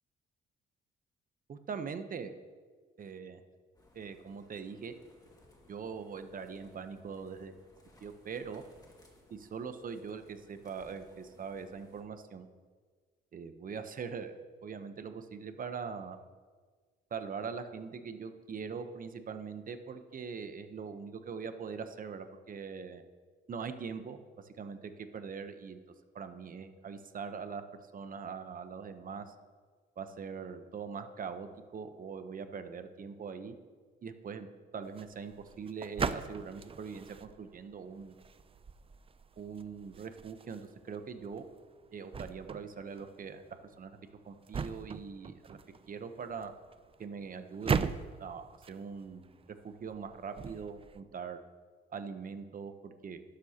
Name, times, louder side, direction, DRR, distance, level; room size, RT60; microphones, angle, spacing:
voice 1, 1.5-2.3 3.0-3.4 3.9-4.9 5.7-7.6 8.0-8.6 9.3-12.5 13.3-16.2 17.1-23.0 23.5-25.8 26.1-29.3 30.0-33.5 34.0-34.5 34.7-38.2 39.4-41.5 41.9-43.4 43.8-44.0 44.2-45.6 45.9-46.5 47.0-47.9 48.2-49.4 49.6-51.4 51.9-53.2, right 6 dB, 45° right, 9 dB, 0.9 m, -42 dB
sound 1, 3.7-12.0, left 1 dB, 20° left, 2.1 m, -63 dB
sound 2, 34.8-51.0, right 6 dB, 30° right, 0.5 m, -41 dB
12.0 x 11.5 x 2.9 m, 1.5 s
cardioid pair, 90°, 20 cm